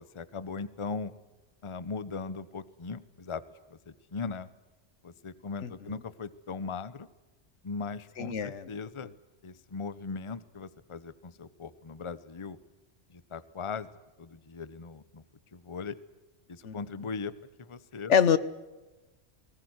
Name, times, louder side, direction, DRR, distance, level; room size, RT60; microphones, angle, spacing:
voice 1, 0.1-1.1 1.6-3.4 3.7-4.5 5.0-7.1 7.6-9.1 9.4-12.6 13.1-13.9 14.2-15.2 15.5-16.0 16.5-17.3 17.6-18.1, left 4 dB, 30° left, 15 dB, 0.8 m, -39 dB
voice 2, 8.2-8.6 16.6-16.8 18.1-18.4, left 7 dB, 75° left, 15 dB, 1.4 m, -23 dB
19.5 x 19.5 x 9.5 m, 1.1 s
omnidirectional pair, 1.2 m